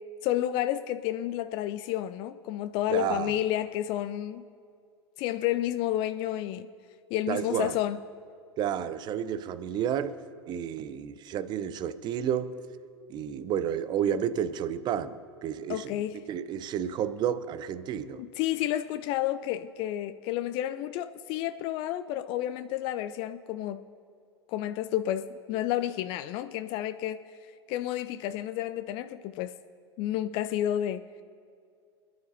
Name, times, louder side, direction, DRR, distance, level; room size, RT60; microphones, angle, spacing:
voice 1, 0.2-4.4 5.2-6.7 7.1-8.0 15.7-16.2 18.2-23.9 24.5-27.2 27.7-29.5 30.0-31.0, left 12 dB, 35° left, 0.4 m, -30 dB
voice 2, 2.9-3.3 7.3-7.8 8.6-10.2 10.5-12.5 13.1-18.2, right 9 dB, 30° right, 0.7 m, -31 dB
25.5 x 10.5 x 2.8 m
figure-of-eight pair, 85°, 14 cm